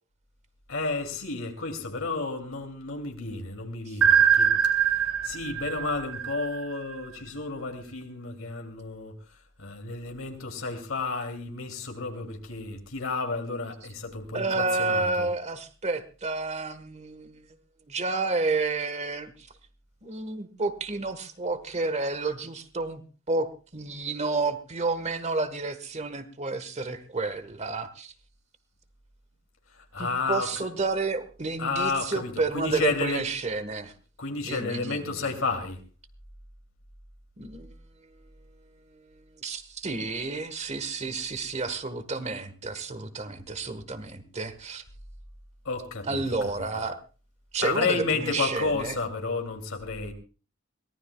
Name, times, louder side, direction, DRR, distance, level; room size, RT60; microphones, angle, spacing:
voice 1, 0.7-4.5 5.2-9.1 9.6-15.3 29.7-30.7 31.6-33.3 34.2-35.8 45.6-46.9 47.6-50.1, left 3 dB, 75° left, 2.7 m, -31 dB
sound 1, 4.0-6.9, right 8 dB, 90° right, 2.1 m, -23 dB
voice 2, 14.3-17.4 17.9-19.3 20.0-23.0 23.3-28.1 30.0-33.9 34.4-35.3 37.4-37.7 39.4-44.8 46.0-47.0 47.5-49.0, right 3 dB, 35° right, 1.4 m, -30 dB
23.0 x 18.5 x 2.3 m
head